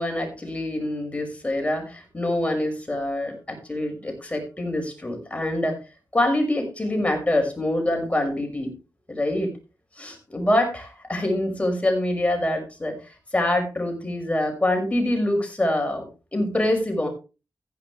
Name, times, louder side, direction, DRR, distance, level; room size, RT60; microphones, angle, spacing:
voice 1, 0.0-5.8 6.1-8.8 9.1-9.5 10.0-16.0 16.3-17.1, left 1 dB, 20° left, 3 dB, 5.8 m, -25 dB
15.5 x 10.5 x 3.2 m, 0.31 s
wide cardioid pair, 75°, 7 cm